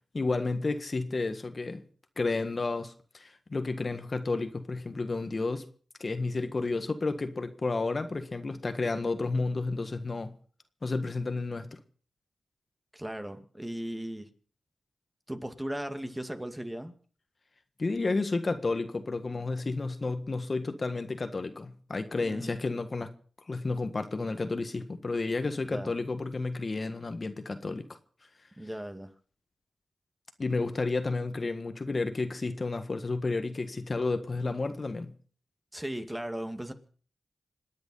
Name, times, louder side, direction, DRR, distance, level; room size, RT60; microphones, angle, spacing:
voice 1, 0.1-1.8 2.2-5.6 6.0-10.3 10.8-11.8 17.8-23.1 23.5-28.0 30.4-35.1, left 3 dB, 45° left, 1.6 m, -31 dB
voice 2, 12.9-14.3 15.3-16.9 22.2-22.6 25.7-25.9 28.6-29.1 35.7-36.7, right 1 dB, 15° right, 2.2 m, -37 dB
26.5 x 9.5 x 5.5 m
cardioid pair, 55°, 0 cm